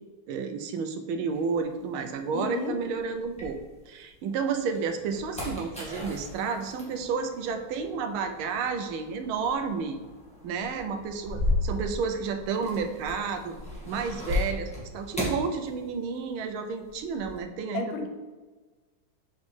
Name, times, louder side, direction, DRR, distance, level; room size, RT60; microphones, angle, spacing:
voice 1, 0.3-3.6 3.9-10.0 10.4-13.6 13.9-17.9, right 5 dB, 85° right, 7 dB, 1.5 m, -31 dB
sound 1, 1.3-4.1 4.6-16.3 16.6-17.4, left 2 dB, 5° left, 1.3 m, -35 dB
voice 2, 2.3-2.8 17.7-18.1, left 4 dB, 85° left, 5 dB, 1.6 m, -32 dB
6.6 x 5.2 x 3.2 m, 1.3 s
omnidirectional pair, 2.2 m